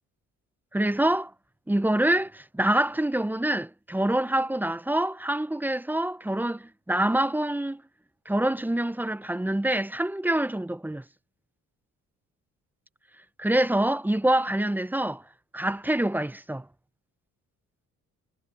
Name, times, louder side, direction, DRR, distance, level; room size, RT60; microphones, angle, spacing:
voice 1, 0.7-1.3 1.7-7.8 8.3-11.0 13.4-15.2 15.5-16.7, right 1 dB, 5° right, 0.7 m, -26 dB
cardioid pair, 90°, 30 cm